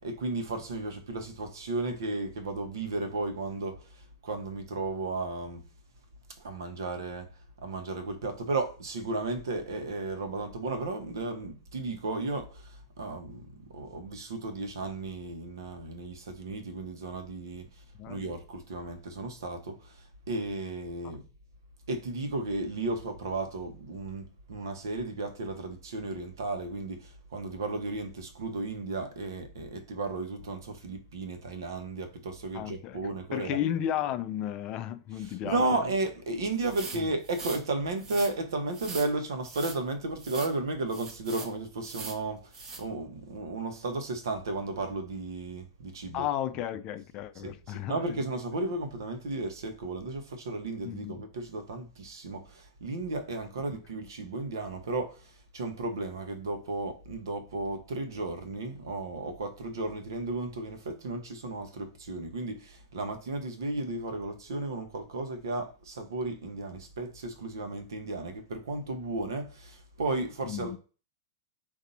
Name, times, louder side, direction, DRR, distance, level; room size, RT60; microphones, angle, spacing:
voice 1, 0.0-5.6 6.4-7.3 7.6-17.7 18.1-21.2 21.9-33.6 35.2-46.2 47.4-70.8, right 2 dB, 80° right, 1.0 m, -34 dB
voice 2, 32.5-33.0 33.3-35.8 36.9-37.1 46.1-48.2 50.8-51.2 53.7-53.8 70.4-70.8, left 11 dB, 35° left, 0.4 m, -34 dB
sound 1, 36.6-37.6 38.0-38.3 38.7-39.1 39.4-39.8 40.2-40.5 40.9-41.5 41.8-42.2 42.5-42.8, right 4 dB, 25° right, 0.8 m, -41 dB
4.0 x 2.6 x 4.0 m
hypercardioid pair, 130°, 2 cm